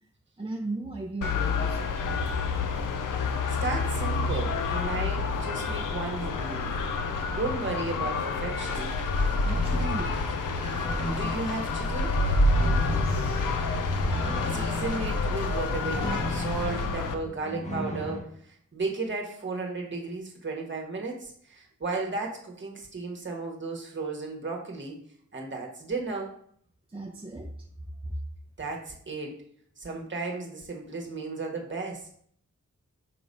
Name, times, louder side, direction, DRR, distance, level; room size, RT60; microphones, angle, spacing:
voice 1, 0.4-2.2 9.4-10.2 12.7-13.5 14.0-14.2 26.9-27.5 28.0-28.1, right 2 dB, 15° right, 0 dB, 0.6 m, -37 dB
sound 1, 1.2-17.1, left 5 dB, 85° left, 0.7 m, -30 dB
voice 2, 3.5-6.8 7.1-9.0 11.1-12.1 14.5-24.9 25.3-26.3 28.6-29.4 29.8-32.1, right 3 dB, 40° right, 0 dB, 1.3 m, -34 dB
sound 2, 8.6-16.9, equal, 50° left, 0.9 m, -29 dB
sound 3, 9.5-18.2, left 1 dB, 20° left, 1.0 m, -37 dB
5.9 x 3.0 x 5.2 m, 0.63 s
wide cardioid pair, 120°, 31 cm